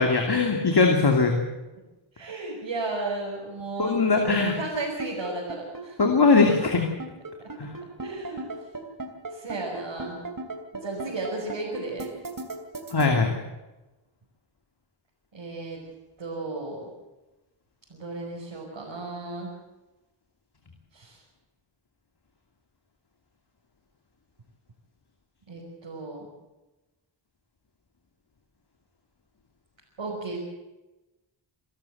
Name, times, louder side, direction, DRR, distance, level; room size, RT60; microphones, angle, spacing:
voice 1, 0.0-1.4 3.8-4.5 6.0-6.8 7.6-7.7 12.9-13.3, left 4 dB, 50° left, 3 dB, 2.7 m, -20 dB
voice 2, 2.1-4.0 4.3-6.1 8.0-8.4 9.3-10.2 10.7-12.1 15.3-15.9 16.2-16.9 17.9-19.5 20.9-21.2 25.5-26.3 30.0-30.4, right 2 dB, 70° right, -3 dB, 5.5 m, -34 dB
sound 1, 4.4-13.1, right 3 dB, 40° right, 3.0 m, -36 dB
26.5 x 13.0 x 7.9 m, 1.1 s
wide cardioid pair, 75°, 48 cm